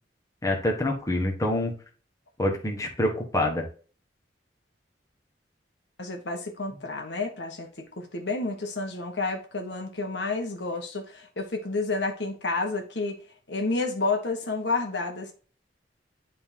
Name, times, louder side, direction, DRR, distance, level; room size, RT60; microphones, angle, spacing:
voice 1, 0.4-1.7 2.4-3.7, left 1 dB, 20° left, 1.4 m, -26 dB
voice 2, 6.0-13.1 13.5-15.3, left 3 dB, 70° left, 1.4 m, -30 dB
10.5 x 3.8 x 2.9 m
head